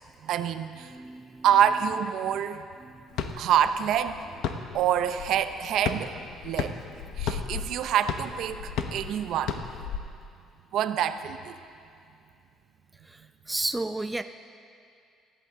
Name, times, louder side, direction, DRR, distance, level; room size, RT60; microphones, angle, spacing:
voice 1, 0.2-0.9 1.4-2.6 3.4-4.2 4.7-6.1 6.4-6.8 7.2-9.6 10.7-11.5, right 9 dB, 65° right, 10 dB, 0.6 m, -26 dB
voice 2, 0.8-1.5 2.8-3.2 13.0-14.2, right 2 dB, 10° right, 9 dB, 0.3 m, -33 dB
sound 1, 3.1-10.0, left 7 dB, 65° left, 0.9 m, -35 dB
19.0 x 14.5 x 3.6 m, 2.4 s
cardioid pair, 150°, 0 cm